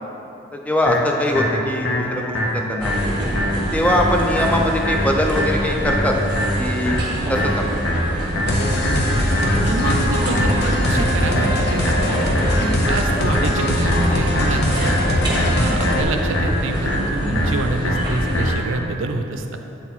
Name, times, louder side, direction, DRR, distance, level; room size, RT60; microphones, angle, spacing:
voice 1, 0.5-2.3 2.7-3.0 3.7-6.2 6.6-7.0 7.3-7.8 12.6-12.9, left 1 dB, 5° left, 1 dB, 0.5 m, -22 dB
sound 1, 0.9-18.8, equal, 80° left, 1.3 m, -25 dB
sound 2, 2.8-18.5, equal, 25° right, 1.2 m, -26 dB
sound 3, 8.5-16.0, left 1 dB, 55° left, 0.7 m, -21 dB
voice 2, 9.5-12.2 12.9-15.0 15.5-19.6, right 2 dB, 75° right, 5 dB, 0.5 m, -27 dB
7.8 x 4.4 x 4.1 m, 2.9 s
head